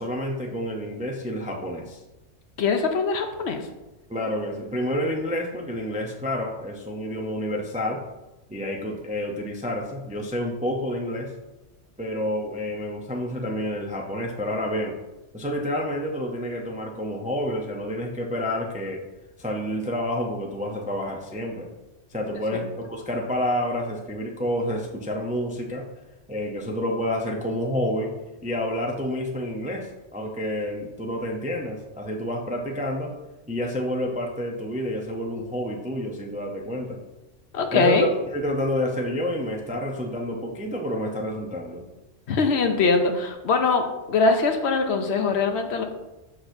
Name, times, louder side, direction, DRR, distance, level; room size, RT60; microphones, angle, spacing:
voice 1, 0.0-2.0 4.1-8.0 8.5-11.3 12.0-15.0 15.3-19.0 19.4-21.7 22.1-25.8 26.3-28.1 28.4-33.1 33.5-37.0 37.7-41.8, left 1 dB, 10° right, 0 dB, 0.4 m, -29 dB
voice 2, 2.6-3.7 22.5-22.6 37.5-38.1 42.3-45.8, left 4 dB, 65° left, 6 dB, 0.9 m, -22 dB
6.5 x 5.9 x 2.6 m, 1.0 s
omnidirectional pair, 1.3 m